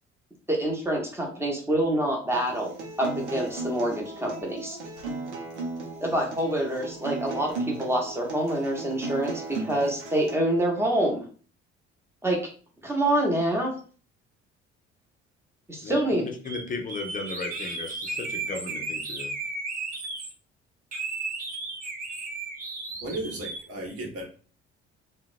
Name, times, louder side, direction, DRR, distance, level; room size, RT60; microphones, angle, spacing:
voice 1, 0.5-2.7 3.0-4.8 6.0-11.3 12.2-12.4 12.8-13.7 15.7-16.2, right 1 dB, 5° right, -1 dB, 0.9 m, -26 dB
Acoustic guitar, 2.3-10.3, right 3 dB, 85° right, 0.6 m, -36 dB
voice 2, 15.8-19.3, left 4 dB, 25° left, 3 dB, 0.6 m, -36 dB
sound 1, 16.5-16.6 16.9-20.3 20.9-23.6, right 3 dB, 25° right, 0.6 m, -34 dB
voice 3, 23.0-24.2, right 1 dB, 45° right, -1 dB, 1.0 m, -34 dB
2.8 x 2.1 x 2.5 m, 0.40 s
figure-of-eight pair, 55°, 34 cm